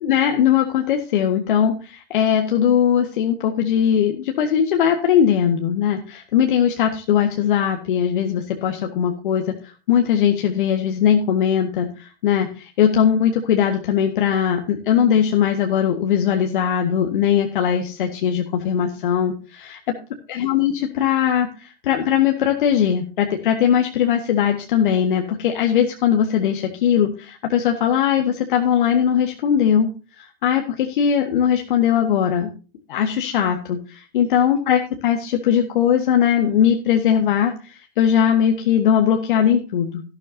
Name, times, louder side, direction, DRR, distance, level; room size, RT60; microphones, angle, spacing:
voice 1, 0.0-19.8 20.3-29.9 30.2-32.5 32.9-40.0, left 9 dB, 55° left, 4 dB, 1.7 m, -20 dB
13.5 x 12.0 x 2.8 m, 0.34 s
figure-of-eight pair, 90°, 30 cm